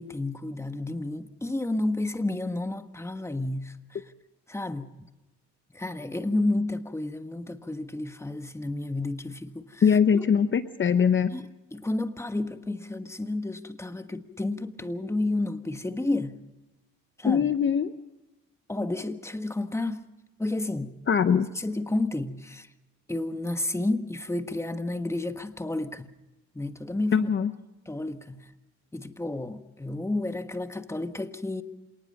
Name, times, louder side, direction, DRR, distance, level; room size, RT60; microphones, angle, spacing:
voice 1, 0.0-4.0 4.5-4.9 5.7-9.8 10.1-10.3 11.3-16.4 17.2-17.5 18.7-20.1 20.4-21.0 21.5-22.7 23.1-26.1 26.5-27.3 27.8-28.5 28.9-31.6, left 2 dB, 10° left, 1.5 m, -31 dB
voice 2, 9.8-11.3 17.2-17.9 21.1-21.5 27.1-27.5, left 7 dB, 40° left, 0.9 m, -22 dB
27.0 x 19.0 x 5.4 m
cardioid pair, 90°, 30 cm